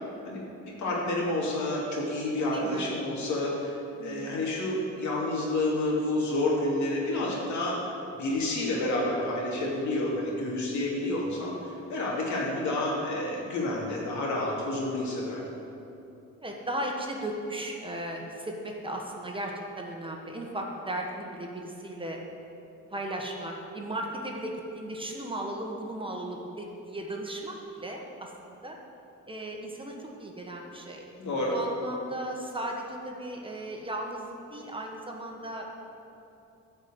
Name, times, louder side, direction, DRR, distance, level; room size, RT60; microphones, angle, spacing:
voice 1, 0.2-3.8 4.0-15.4 31.2-31.5, left 2 dB, 70° left, -3 dB, 2.7 m, -29 dB
voice 2, 2.5-2.9 4.0-4.4 16.4-22.2 22.9-28.8 29.3-31.0 31.5-35.8, right 1 dB, 15° right, 0 dB, 1.4 m, -36 dB
11.5 x 5.3 x 7.8 m, 2.8 s
cardioid pair, 90°, 30 cm